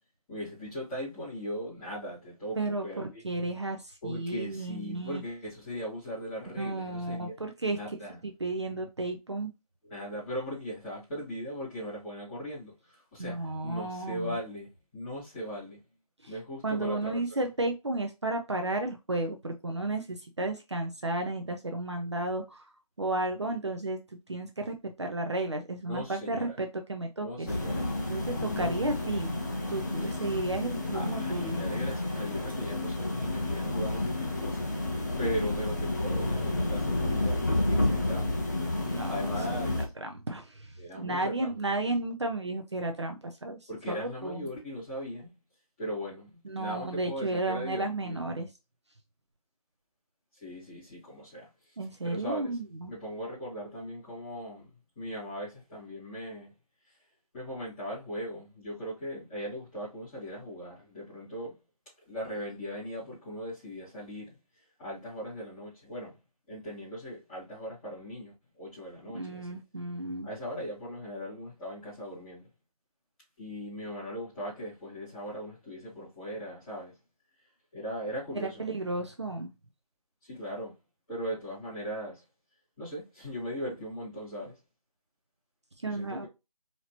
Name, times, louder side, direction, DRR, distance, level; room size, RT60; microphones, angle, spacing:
voice 1, 0.3-3.5 4.0-7.3 7.7-8.2 9.8-15.8 16.3-17.2 25.8-26.5 27.2-27.9 28.4-28.7 30.0-30.1 30.9-38.4 38.7-39.9 40.8-41.5 43.7-45.3 45.8-48.2 50.4-51.5 52.0-52.6 52.9-54.7 55.0-56.5 57.3-61.5 62.1-64.3 64.8-66.1 66.5-69.6 70.2-72.5 73.4-76.9 77.7-78.7 80.2-80.7 81.1-82.2 82.8-84.5 85.8-86.3, equal, 10° left, 2.2 m, -39 dB
voice 2, 2.6-5.2 6.6-7.8 8.2-9.5 13.2-14.4 16.2-16.3 16.6-22.6 23.0-27.5 28.1-29.3 29.7-31.6 38.9-39.6 40.0-44.5 46.4-48.5 51.8-52.9 69.1-70.3 78.3-79.5 85.8-86.3, right 2 dB, 45° right, 0.5 m, -33 dB
sound 1, 27.5-39.9, left 2 dB, 30° left, 0.7 m, -30 dB
4.3 x 2.8 x 2.8 m
figure-of-eight pair, 165°, 20 cm